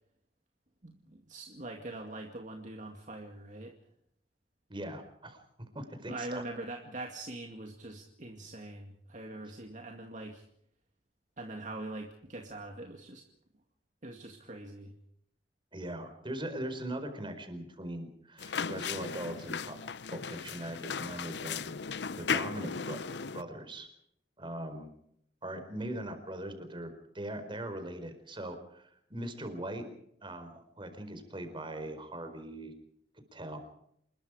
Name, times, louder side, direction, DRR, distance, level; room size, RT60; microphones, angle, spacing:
voice 1, 0.8-3.7 6.1-10.5 11.4-13.2 14.0-14.9, right 2 dB, 45° right, 3 dB, 2.3 m, -43 dB
voice 2, 4.7-5.4 5.7-6.4 15.7-19.8 20.1-23.9 24.4-24.9 25.4-29.9 30.2-32.7 33.1-33.6, right 1 dB, 30° right, 7 dB, 4.5 m, -41 dB
sound 1, 18.4-23.4, left 6 dB, 75° left, 0.7 m, -36 dB
27.5 x 21.5 x 5.0 m, 0.71 s
head